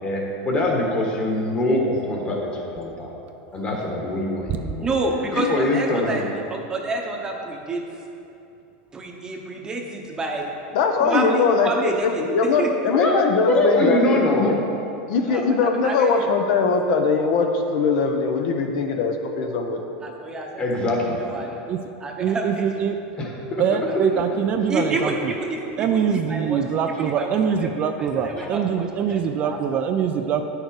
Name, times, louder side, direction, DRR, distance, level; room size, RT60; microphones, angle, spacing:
voice 1, 0.0-3.1 3.5-4.9 5.3-6.3 12.9-14.6 20.6-21.2 23.2-23.6 28.4-28.5, left 1 dB, 25° left, 0 dB, 1.4 m, -23 dB
voice 2, 4.8-8.0 8.9-10.5 11.0-12.2 12.6-12.7 15.3-16.3 20.0-20.7 21.2-21.6 22.0-22.8 23.9-24.1 24.7-29.8, right 2 dB, 15° right, 1 dB, 0.9 m, -29 dB
voice 3, 10.7-14.6 15.1-19.8, left 4 dB, 60° left, 4 dB, 0.9 m, -21 dB
voice 4, 22.2-23.0 23.6-25.3 25.8-30.4, right 7 dB, 35° right, 6 dB, 0.4 m, -23 dB
9.5 x 6.6 x 4.8 m, 2.8 s
supercardioid pair, 150°, 4 cm